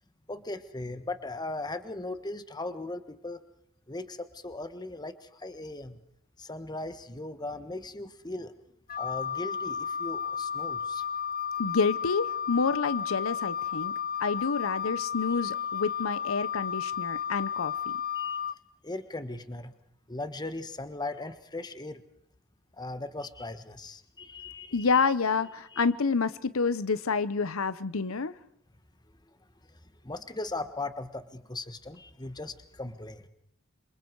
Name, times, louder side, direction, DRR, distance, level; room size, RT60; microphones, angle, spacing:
voice 1, 0.3-3.4 3.9-6.0 6.4-8.5 9.0-11.0 18.1-18.4 18.8-19.7 20.1-22.0 22.8-25.0 25.7-25.8 29.7-29.8 30.0-33.3, left 2 dB, 20° left, 10 dB, 1.4 m, -38 dB
Wind instrument woodwind instrument, 8.9-18.5, left 8 dB, 45° left, 0.9 m, -33 dB
voice 2, 11.6-13.9 14.2-17.9 24.7-28.3, left 4 dB, 80° left, 15 dB, 0.9 m, -28 dB
28.0 x 26.5 x 4.7 m, 0.76 s
head